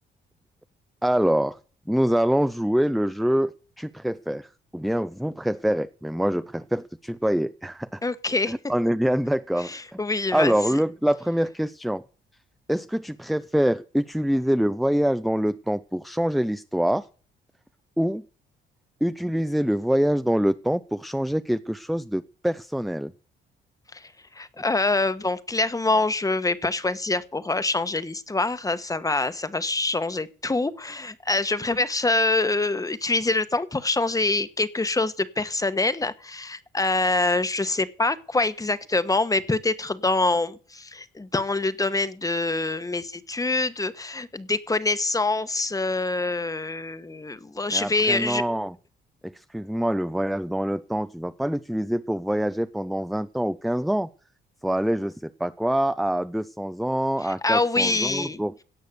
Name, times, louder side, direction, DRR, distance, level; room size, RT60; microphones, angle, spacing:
voice 1, 1.0-1.6 1.9-8.0 8.5-10.0 10.3-12.0 12.7-17.1 18.0-18.2 19.0-23.1 47.7-48.8 49.2-54.1 54.6-58.5, equal, ahead, 13 dB, 0.5 m, -25 dB
voice 2, 8.0-8.5 9.7-10.5 23.9-48.4 57.4-58.4, left 3 dB, 15° left, 13 dB, 1.2 m, -25 dB
17.0 x 6.4 x 6.8 m, 0.40 s
cardioid pair, 90°, 20 cm